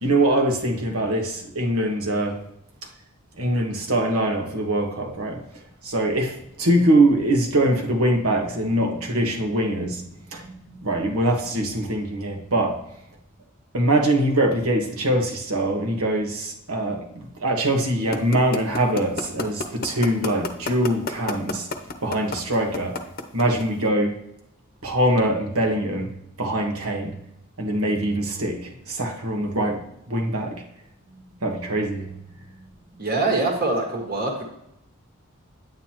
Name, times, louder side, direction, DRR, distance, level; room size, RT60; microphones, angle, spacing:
voice 1, 0.0-2.4 3.4-5.4 5.8-10.0 10.3-12.8 13.7-21.7 22.0-23.0 23.3-24.2 24.8-27.2 27.6-30.6 31.4-32.1, right 1 dB, 90° right, 2 dB, 1.6 m, -23 dB
sound 1, 18.1-23.8, left 3 dB, 45° left, 0.8 m, -28 dB
voice 2, 33.0-34.4, right 2 dB, 45° right, 1 dB, 1.8 m, -24 dB
9.4 x 9.3 x 3.0 m, 0.81 s
head